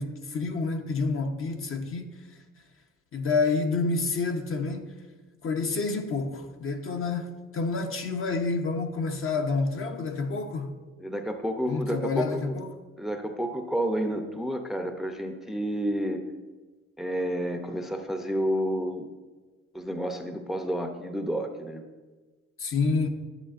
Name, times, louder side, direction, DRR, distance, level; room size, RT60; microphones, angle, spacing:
voice 1, 0.0-2.1 3.1-4.9 5.4-10.7 11.7-12.7 22.6-23.1, left 4 dB, 45° left, 0.8 m, -28 dB
voice 2, 11.0-12.6 13.0-16.2 17.0-19.1 19.7-21.8, equal, ahead, 0.6 m, -30 dB
11.0 x 7.7 x 2.5 m
cardioid pair, 90°, 30 cm